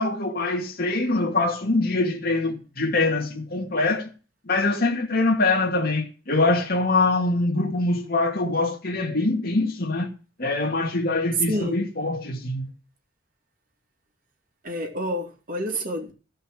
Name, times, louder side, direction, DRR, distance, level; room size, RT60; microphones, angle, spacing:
voice 1, 0.0-4.1 4.5-10.1 10.4-12.7, left 2 dB, 50° left, 2.3 m, -24 dB
voice 2, 14.6-16.1, equal, 45° right, 2.7 m, -29 dB
14.5 x 5.7 x 7.5 m
head